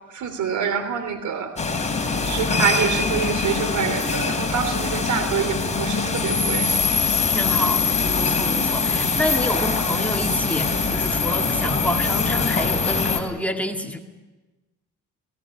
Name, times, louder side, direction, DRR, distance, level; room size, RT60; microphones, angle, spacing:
voice 1, 0.1-1.5 2.2-6.7, right 7 dB, 75° right, 9 dB, 3.3 m, -26 dB
sound 1, 1.6-13.2, left 4 dB, 25° left, 3.2 m, -23 dB
voice 2, 7.3-7.8 8.2-14.0, left 1 dB, 5° left, 3 dB, 2.0 m, -28 dB
18.0 x 17.5 x 9.8 m, 1.2 s
cardioid pair, 90°, 30 cm